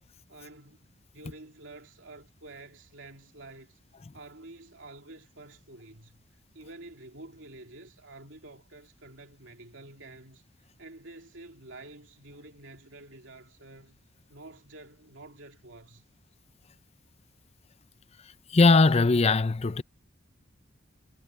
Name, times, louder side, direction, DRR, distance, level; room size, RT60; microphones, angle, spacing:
voice 1, 0.3-3.8 4.1-6.2 6.5-10.4 10.8-14.0 14.3-16.0, right 2 dB, 80° right, 2.6 m, -49 dB
voice 2, 18.5-19.8, left 3 dB, 35° left, 0.5 m, -20 dB
head